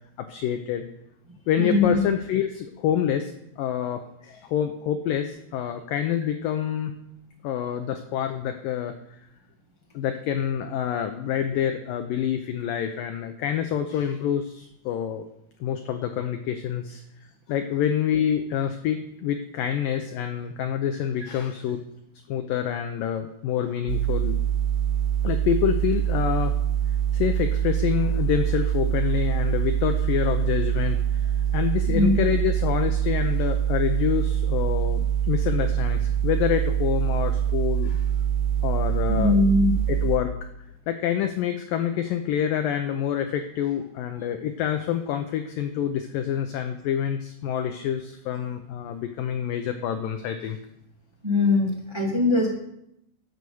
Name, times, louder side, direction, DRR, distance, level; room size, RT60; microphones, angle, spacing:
voice 1, 0.2-0.9 1.5-6.9 7.4-8.9 9.9-15.3 15.6-17.0 17.5-21.8 22.3-24.4 25.2-26.5 27.1-38.0 38.6-39.4 39.9-40.3 40.9-50.6, left 9 dB, 80° left, 6 dB, 2.0 m, -27 dB
voice 2, 1.6-2.0 31.9-32.1 39.1-39.7 51.2-52.5, left 2 dB, 40° right, -2 dB, 0.4 m, -21 dB
sound 1, 23.9-40.2, right 10 dB, 85° right, 3.1 m, -24 dB
11.0 x 7.9 x 7.0 m, 0.79 s
omnidirectional pair, 4.9 m